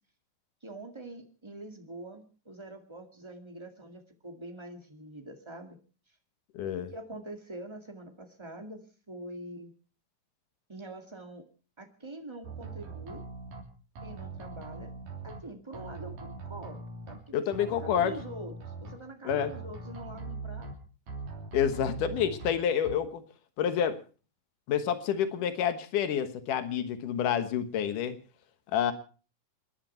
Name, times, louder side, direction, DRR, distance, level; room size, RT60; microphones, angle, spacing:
voice 1, 0.6-5.8 6.8-9.7 10.7-11.4 11.8-13.2 14.0-14.9 15.2-16.8 17.1-20.7, right 1 dB, 10° right, 4 dB, 1.5 m, -44 dB
voice 2, 6.5-6.9 17.3-18.2 19.3-19.5 21.5-23.2 23.6-24.0 24.7-28.2 28.7-28.9, left 8 dB, 90° left, 10 dB, 2.8 m, -28 dB
sound 1, 12.4-13.6 14.0-15.4 15.7-17.2 17.5-18.9 19.3-20.7 21.1-22.5 22.8-22.9, right 3 dB, 75° right, 4.7 m, -41 dB
28.0 x 11.0 x 4.4 m, 0.37 s
omnidirectional pair, 3.6 m